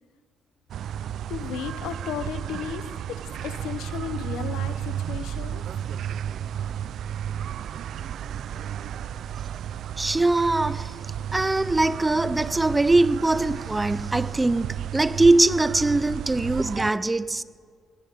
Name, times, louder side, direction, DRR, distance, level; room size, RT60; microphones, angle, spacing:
sound 1, 0.7-16.9, right 9 dB, 70° right, 0.4 m, -33 dB
voice 1, 1.3-5.6, left 9 dB, 90° left, 0.8 m, -34 dB
voice 2, 10.0-10.9 11.3-17.4, right 2 dB, 15° right, 0.6 m, -22 dB
19.0 x 11.0 x 6.7 m
cardioid pair, 90°, 0 cm